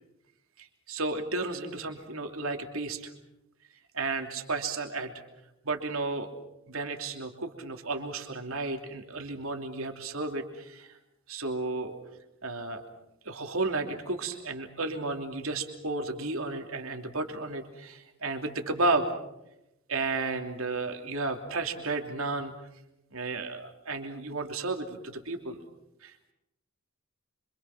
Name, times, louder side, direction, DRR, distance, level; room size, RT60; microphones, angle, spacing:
voice 1, 0.6-3.1 3.9-5.1 5.6-6.3 6.7-11.0 11.3-12.0 12.4-12.8 13.2-19.1 19.9-22.5 23.1-25.7 26.0-26.3, right 3 dB, 75° right, 4 dB, 3.0 m, -33 dB
26.5 x 26.0 x 6.0 m, 0.87 s
head